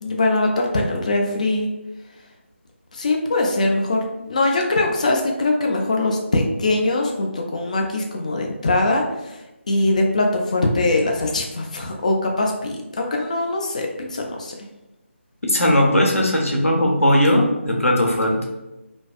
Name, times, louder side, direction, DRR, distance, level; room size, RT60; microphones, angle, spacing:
voice 1, 0.0-1.7 2.9-9.4 9.7-14.5, left 2 dB, 35° left, 1 dB, 0.3 m, -22 dB
voice 2, 15.4-18.4, left 1 dB, 90° left, -1 dB, 0.6 m, -18 dB
2.6 x 2.2 x 2.3 m, 1.0 s
figure-of-eight pair, 160°, 7 cm